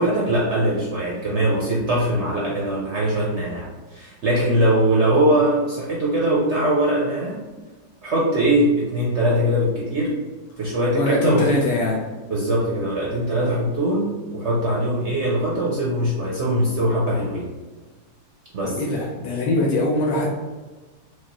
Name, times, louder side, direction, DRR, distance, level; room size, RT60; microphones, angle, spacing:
voice 1, 0.0-7.4 8.0-10.1 10.6-11.5 12.3-17.5 18.5-18.7, right 1 dB, 60° right, -4 dB, 0.8 m, -21 dB
voice 2, 10.9-12.1 18.6-20.3, left 1 dB, 85° left, -2 dB, 1.2 m, -22 dB
4.5 x 2.4 x 2.9 m, 1.2 s
omnidirectional pair, 1.8 m